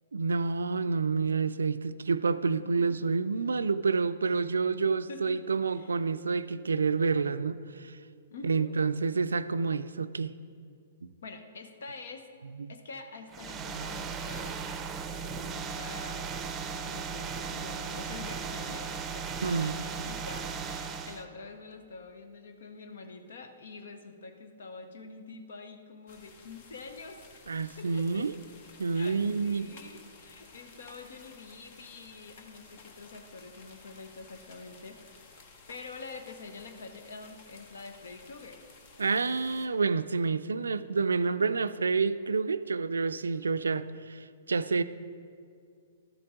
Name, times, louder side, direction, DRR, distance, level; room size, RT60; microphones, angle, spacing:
voice 1, 0.1-8.0 8.4-10.3 11.0-11.1 12.6-12.7 13.7-13.9 19.4-19.7 27.5-28.3 28.8-29.7 39.0-44.8, right 4 dB, 80° right, 0.3 m, -28 dB
voice 2, 2.6-3.0 4.2-4.3 5.1-5.4 5.7-6.0 8.3-8.7 11.2-14.6 15.2-28.3 28.9-35.2 35.7-38.6, left 4 dB, 70° left, 0.9 m, -46 dB
sound 1, 13.3-21.2, right 5 dB, 20° right, 0.6 m, -37 dB
sound 2, 26.1-39.7, left 4 dB, 50° left, 1.2 m, -54 dB
12.5 x 7.7 x 3.7 m
figure-of-eight pair, 115°, 0 cm